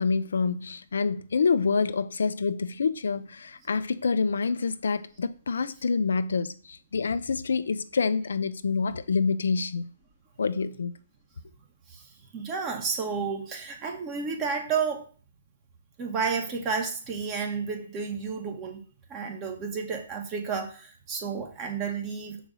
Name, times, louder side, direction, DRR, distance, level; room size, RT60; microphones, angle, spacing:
voice 1, 0.0-9.9 10.4-10.9, left 5 dB, 80° left, 0.6 m, -27 dB
voice 2, 11.9-15.0 16.0-18.8 19.1-22.4, right 5 dB, 25° right, 1.7 m, -31 dB
6.4 x 5.0 x 6.4 m
hypercardioid pair, 145°, 0 cm